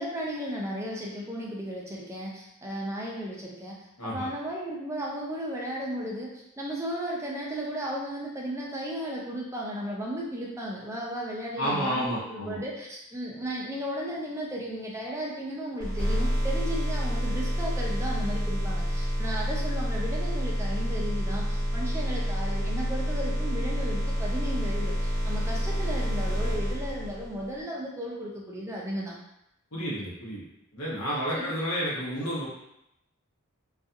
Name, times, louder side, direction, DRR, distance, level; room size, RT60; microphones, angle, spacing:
voice 1, 0.0-3.8 4.0-29.1 31.3-31.4, equal, 10° right, -3 dB, 0.4 m, -35 dB
voice 2, 4.0-4.3 11.6-12.6 29.7-30.5 30.7-32.5, equal, 65° left, -6 dB, 0.9 m, -30 dB
sound 1, 15.8-27.5, equal, 5° left, 0.8 m, -28 dB
2.4 x 2.3 x 2.6 m, 0.82 s
head